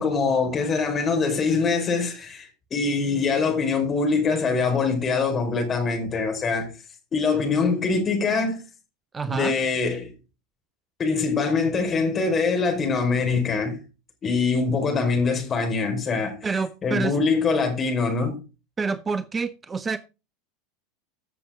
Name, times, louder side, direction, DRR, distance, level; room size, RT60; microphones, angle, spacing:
voice 1, 0.0-6.7 7.1-8.6 9.2-10.1 11.0-13.8 14.2-16.4 16.8-18.4, left 4 dB, 30° left, 4.7 m, -23 dB
voice 2, 9.1-9.5 16.4-17.2 18.8-20.0, right 4 dB, 20° right, 0.7 m, -27 dB
15.5 x 6.9 x 3.8 m
figure-of-eight pair, 85°, 0 cm